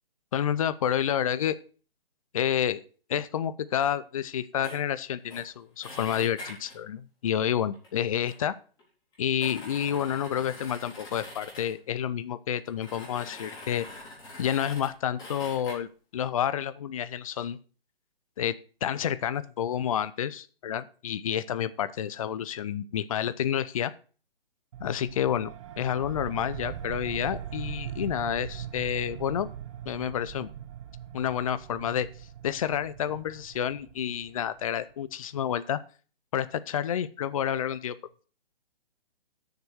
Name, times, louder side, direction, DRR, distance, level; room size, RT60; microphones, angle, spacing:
voice 1, 0.3-1.6 2.3-2.8 3.1-8.5 9.2-13.9 14.4-17.6 18.4-23.9 24.8-29.5 29.9-30.5 31.1-32.1 32.4-35.8 36.3-37.9, left 9 dB, 35° left, 14 dB, 0.6 m, -29 dB
sound 1, 4.6-4.8 5.3-5.4 5.8-6.8 7.7-7.9 8.3-8.4 8.8-8.9 9.1-11.8 12.5-14.9 15.2-15.8, left 2 dB, 15° left, 3.9 m, -44 dB
sound 2, 24.7-34.9, right 10 dB, 30° right, 0.9 m, -41 dB
7.0 x 6.7 x 7.7 m, 0.39 s
figure-of-eight pair, 140°, 29 cm